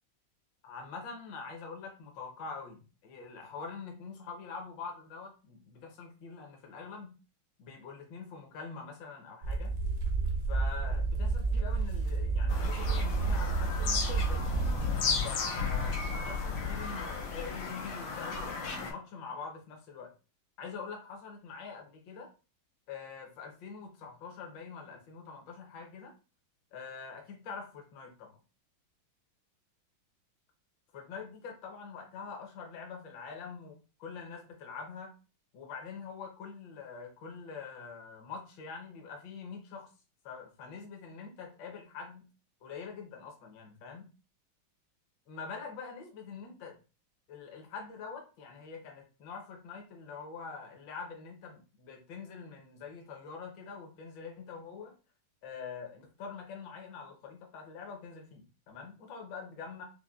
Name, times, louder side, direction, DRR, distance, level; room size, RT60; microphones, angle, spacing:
voice 1, 0.6-7.2 7.6-9.7 10.5-14.4 15.2-20.1 20.6-22.3 22.9-26.1 26.7-28.3 30.9-35.1 35.5-39.9 40.2-42.3 42.6-44.1 45.3-46.7 47.3-54.9 55.4-59.8, left 5 dB, 70° left, 2 dB, 1.5 m, -44 dB
sound 1, 9.4-14.8, right 4 dB, 75° right, 0.8 m, -30 dB
Bird vocalization bird call bird song, 12.5-18.9, left 5 dB, 90° left, 1.6 m, -34 dB
5.6 x 2.1 x 2.4 m, 0.33 s
omnidirectional pair, 2.2 m